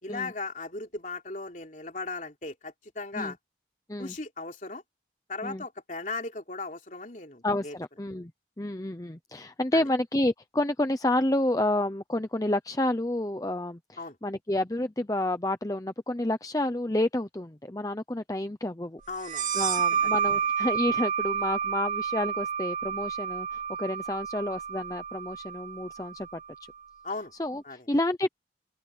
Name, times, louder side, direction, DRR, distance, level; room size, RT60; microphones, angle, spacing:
voice 1, 0.0-3.4 4.0-4.8 5.3-7.7 9.7-9.9 14.0-14.2 19.1-19.6 20.0-20.1 27.0-27.3 27.6-27.9, left 3 dB, 45° left, 3.5 m, -37 dB
voice 2, 7.4-8.3 8.6-19.0 19.5-23.5 23.8-26.3 27.4-28.3, left 1 dB, 20° left, 0.8 m, -29 dB
sound 1, 19.2-26.5, right 7 dB, 45° right, 0.9 m, -30 dB
open air
head